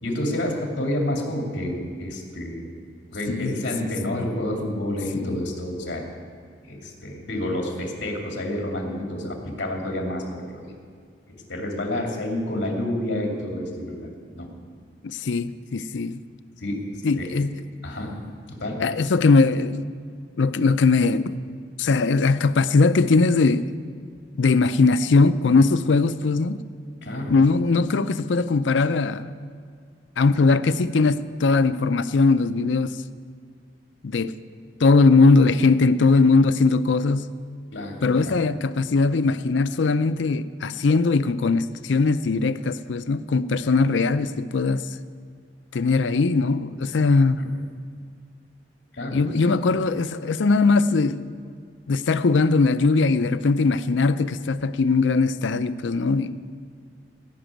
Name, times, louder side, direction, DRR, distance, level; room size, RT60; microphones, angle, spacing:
voice 1, 0.0-2.7 3.1-6.0 6.6-10.7 11.3-14.1 14.3-14.5 16.6-16.8 17.1-17.3 17.8-18.2 18.5-18.8 27.0-27.3 37.7-38.0 38.2-38.4 47.4-47.5 48.9-49.2, left 1 dB, 70° left, 2.7 m, -29 dB
voice 2, 3.3-3.6 5.1-5.3 15.0-16.2 17.0-17.6 18.8-19.8 20.4-21.4 21.8-23.7 24.4-26.6 27.3-29.3 30.2-33.0 34.0-34.3 34.8-37.3 38.0-44.9 45.7-47.5 49.1-51.3 51.9-56.4, left 3 dB, 85° left, 0.5 m, -20 dB
16.5 x 6.1 x 9.1 m
head